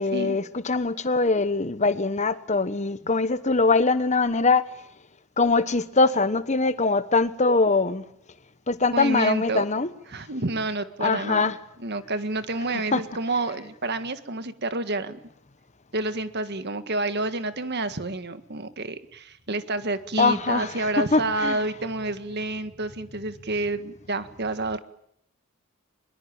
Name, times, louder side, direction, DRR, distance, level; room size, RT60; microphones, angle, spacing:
voice 1, 0.0-4.7 5.4-8.0 8.7-9.9 11.0-11.6 12.9-13.0 20.2-21.6, left 3 dB, 30° left, 1.1 m, -22 dB
voice 2, 8.9-9.6 10.1-11.5 11.8-15.2 15.9-24.8, right 2 dB, 50° right, 1.8 m, -29 dB
24.0 x 22.0 x 8.9 m
head